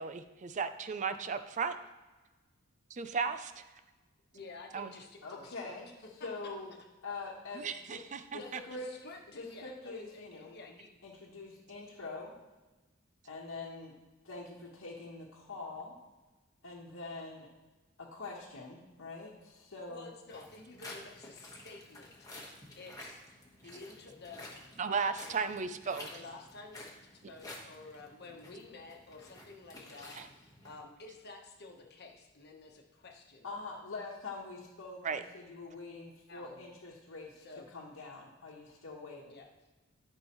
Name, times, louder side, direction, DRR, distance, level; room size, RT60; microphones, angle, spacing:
voice 1, 0.0-1.8 2.9-3.6 4.7-4.9 7.5-8.4 24.8-26.1 30.1-30.3 35.0-35.2, right 5 dB, 35° right, 11 dB, 0.4 m, -35 dB
voice 2, 4.3-5.8 6.2-6.5 7.1-7.2 7.9-8.0 8.3-10.9 19.9-23.2 23.6-24.4 26.1-33.6 36.3-36.6 37.4-37.7 39.3-39.5, left 3 dB, 50° left, 2 dB, 1.1 m, -51 dB
voice 3, 5.2-5.9 6.2-6.7 7.0-7.6 8.3-8.9 9.4-10.6 11.0-12.3 13.2-13.9 14.2-15.9 16.6-17.5 18.1-20.1 33.4-37.4 37.7-39.2, left 3 dB, 80° left, -5 dB, 1.2 m, -44 dB
sound 1, 20.3-30.8, left 2 dB, 20° left, 1.3 m, -51 dB
12.0 x 5.4 x 3.1 m, 1.2 s
head